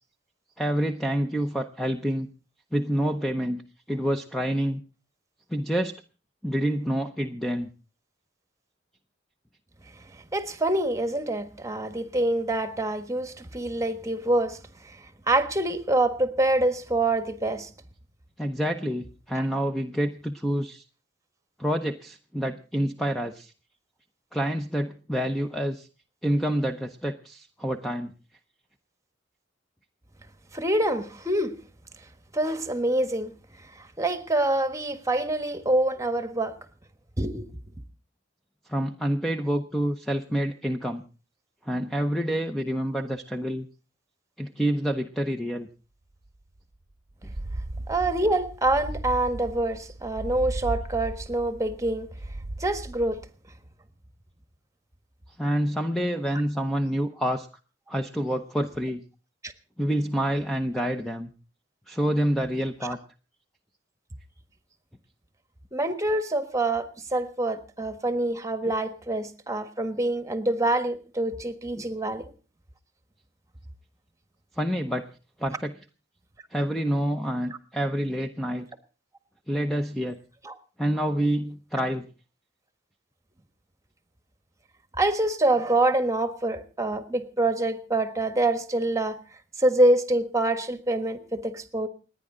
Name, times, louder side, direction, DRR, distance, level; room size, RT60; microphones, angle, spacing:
voice 1, 0.6-2.3 2.7-3.6 3.9-4.8 5.5-5.9 6.4-7.7 18.4-20.8 21.6-23.5 24.3-25.9 26.2-28.1 38.7-41.0 41.6-43.7 44.4-45.7 55.4-57.5 57.9-59.0 59.8-61.3 61.9-63.0 71.8-71.9 74.6-75.0 75.4-75.7 76.5-78.7 79.5-80.2 80.8-82.1, equal, ahead, 0.7 m, -27 dB
voice 2, 10.3-17.7 19.4-19.5 30.5-31.5 32.3-33.3 34.0-36.6 37.2-37.5 47.9-52.1 52.6-53.2 59.4-59.5 65.7-72.3 80.4-80.6 85.0-89.2 89.6-91.9, right 1 dB, 15° right, 1.3 m, -26 dB
sound 1, 46.3-46.4 46.6-46.7 47.1-53.3, right 1 dB, 40° right, 0.8 m, -36 dB
29.0 x 9.8 x 3.8 m
head